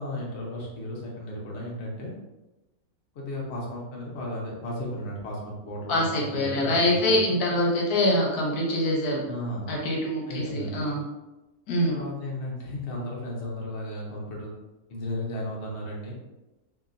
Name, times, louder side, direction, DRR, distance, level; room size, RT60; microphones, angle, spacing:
voice 1, 0.0-2.1 3.1-7.4 9.3-9.8 10.3-11.0 11.9-14.5 14.9-16.1, left 1 dB, 55° left, -3 dB, 0.9 m, -34 dB
voice 2, 5.9-9.2 9.7-11.0 11.7-11.9, left 1 dB, 80° left, -2 dB, 1.2 m, -24 dB
2.9 x 2.7 x 2.5 m, 1.0 s
omnidirectional pair, 1.6 m